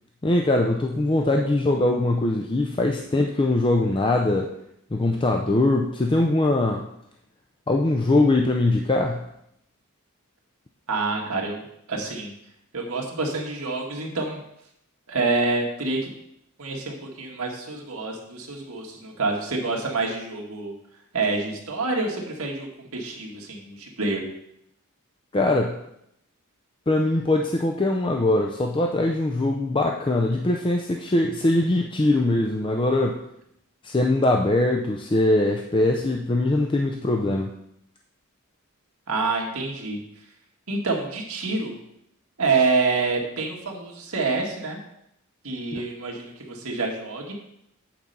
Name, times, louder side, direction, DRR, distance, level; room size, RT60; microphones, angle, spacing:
voice 1, 0.2-4.5 4.9-6.9 7.7-9.3 25.3-25.8 26.9-33.2 33.8-37.5 45.7-45.8, left 2 dB, 20° left, 2 dB, 0.4 m, -22 dB
voice 2, 10.9-11.6 11.9-12.3 12.7-14.4 15.1-16.0 16.6-20.7 21.1-24.2 39.1-40.0 40.7-41.8 42.4-44.8 45.4-47.3, right 3 dB, 75° right, 0 dB, 1.6 m, -27 dB
8.5 x 4.3 x 5.3 m, 0.76 s
head